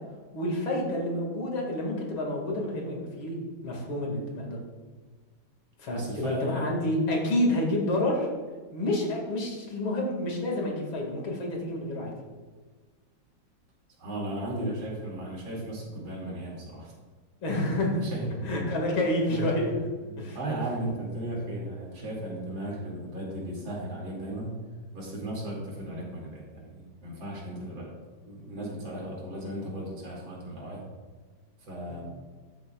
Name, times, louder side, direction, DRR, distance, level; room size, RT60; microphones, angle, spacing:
voice 1, 0.3-3.4 3.6-4.6 5.8-8.3 8.7-12.1 17.4-18.0 18.4-19.7 20.2-20.4 31.9-32.0, left 1 dB, 90° left, -1 dB, 2.9 m, -29 dB
voice 2, 5.9-6.7 14.0-16.9 17.8-18.3 19.3-19.5 20.0-24.6 24.9-27.9 28.2-30.8 31.6-32.0, right 1 dB, 85° right, -3 dB, 3.2 m, -36 dB
13.0 x 7.8 x 2.3 m, 1.4 s
omnidirectional pair, 2.1 m